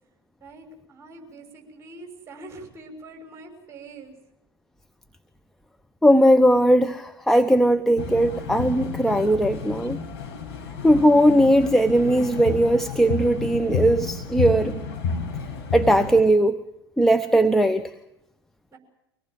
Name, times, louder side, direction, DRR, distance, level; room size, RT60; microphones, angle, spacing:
voice 1, 0.4-4.1 18.7-18.8, right 2 dB, 20° right, 2 dB, 6.2 m, -44 dB
voice 2, 6.0-10.0 10.8-14.7 15.7-16.6 17.0-17.8, right 1 dB, ahead, 8 dB, 0.9 m, -19 dB
sound 1, 8.0-16.2, left 5 dB, 55° left, 5.9 m, -31 dB
25.0 x 18.5 x 7.6 m, 0.85 s
figure-of-eight pair, 75°, 13 cm